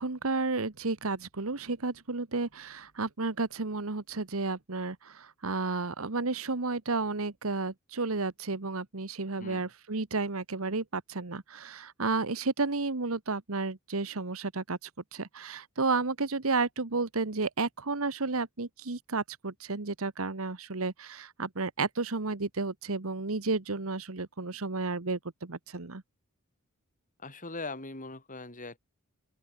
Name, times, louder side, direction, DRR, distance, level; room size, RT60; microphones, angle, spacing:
voice 1, 0.0-26.0, right 3 dB, 75° right, 1.4 m, -32 dB
voice 2, 27.2-28.8, left 3 dB, 40° left, 6.7 m, -40 dB
open air
head